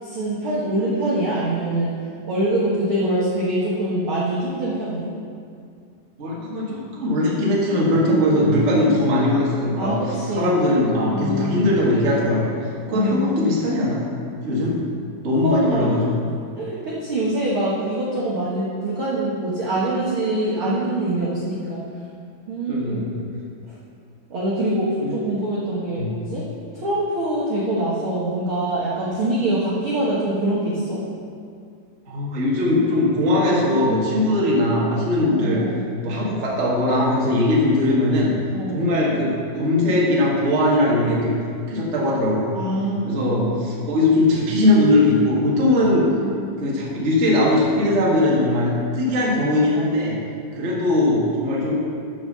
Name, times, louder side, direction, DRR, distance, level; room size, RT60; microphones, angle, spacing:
voice 1, 0.0-1.9 2.3-5.1 8.3-9.0 9.8-10.5 11.1-11.6 12.9-13.5 15.4-15.9 16.6-21.8 22.5-23.2 24.3-26.4 26.7-31.0 35.2-35.8 38.5-38.8 42.5-43.6 45.8-46.6, right 1 dB, 70° right, -7 dB, 1.2 m, -24 dB
voice 2, 6.2-10.0 10.3-14.0 14.4-14.8 15.2-16.2 22.7-23.2 25.0-25.1 26.0-26.1 32.1-35.6 36.0-38.3 38.7-41.4 41.7-42.6 43.0-46.1 46.6-50.1 50.5-51.7, left 1 dB, 40° right, -5 dB, 0.9 m, -20 dB
11.5 x 5.0 x 6.7 m, 2.3 s
omnidirectional pair, 4.7 m